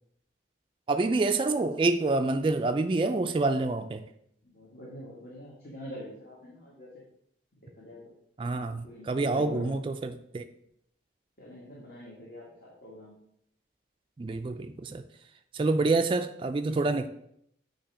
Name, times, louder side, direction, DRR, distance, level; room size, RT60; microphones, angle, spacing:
voice 1, 0.9-4.0 8.4-10.5 14.2-15.0 15.5-17.1, right 3 dB, 30° right, 7 dB, 0.3 m, -27 dB
voice 2, 4.4-6.9 7.8-8.0 8.8-9.8 11.4-13.2 16.6-16.8, left 1 dB, 55° left, -6 dB, 1.7 m, -44 dB
8.7 x 2.9 x 4.8 m, 0.72 s
head